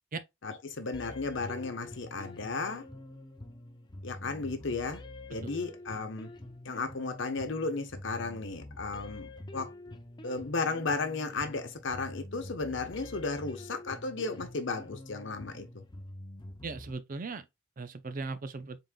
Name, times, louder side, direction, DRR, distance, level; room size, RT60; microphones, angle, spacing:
voice 1, 0.4-2.8 4.0-5.0 5.3-6.3 6.6-9.7 10.2-15.8, left 3 dB, 70° left, 0.8 m, -34 dB
sound 1, 0.9-16.9, left 1 dB, 25° left, 0.6 m, -46 dB
voice 2, 16.6-17.4 17.8-18.8, right 3 dB, 45° right, 0.5 m, -38 dB
3.8 x 3.7 x 2.4 m
head